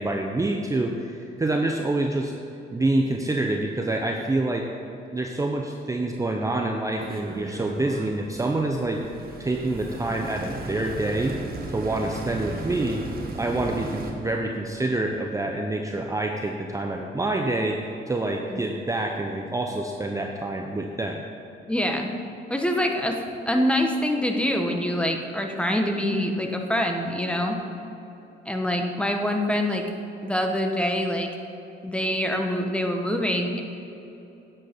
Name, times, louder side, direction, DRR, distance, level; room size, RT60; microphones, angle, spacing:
voice 1, 0.0-2.3 2.7-4.7 5.1-9.0 9.4-11.4 11.7-13.1 13.3-17.8 18.1-21.2, right 2 dB, 15° right, 2 dB, 0.7 m, -27 dB
sound 1, 7.0-14.1, right 3 dB, 50° right, 1.5 m, -36 dB
voice 2, 21.7-22.1 22.5-27.6 28.5-29.8 30.2-31.3 31.8-33.6, left 1 dB, 5° left, 3 dB, 1.1 m, -25 dB
10.0 x 7.9 x 5.2 m, 3.0 s
cardioid pair, 90°, 20 cm